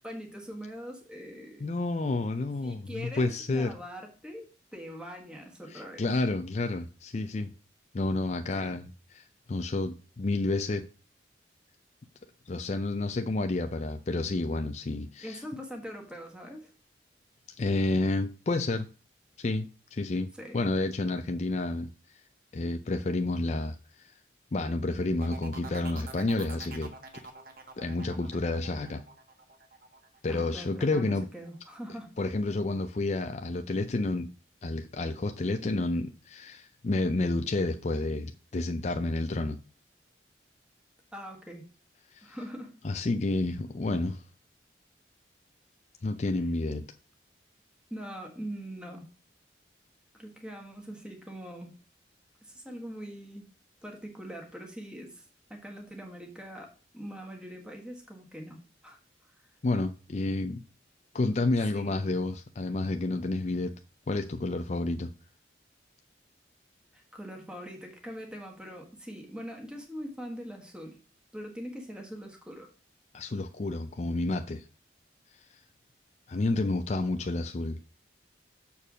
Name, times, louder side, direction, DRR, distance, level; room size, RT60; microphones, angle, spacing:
voice 1, 0.0-1.7 2.6-6.1 8.5-8.7 15.2-16.7 20.4-20.6 30.3-32.1 41.1-41.7 42.2-42.8 47.9-49.1 50.1-51.7 52.4-53.5 53.8-55.2 55.5-59.0 61.7-62.0 66.9-71.0 71.3-72.7, equal, 5° right, 1.5 m, -42 dB
voice 2, 1.6-3.7 5.7-7.5 7.9-10.8 12.5-15.4 17.6-18.9 19.4-22.2 22.5-24.1 24.5-26.9 27.8-29.0 30.2-31.3 32.2-34.3 34.6-39.6 42.1-42.4 42.8-44.2 46.0-46.8 59.6-60.6 61.1-63.8 64.1-65.1 73.1-74.6 75.5-75.6 76.3-77.8, left 2 dB, 40° left, 0.4 m, -30 dB
sound 1, 25.2-30.8 31.2-31.7, right 3 dB, 50° right, 1.5 m, -46 dB
6.9 x 4.4 x 6.1 m
head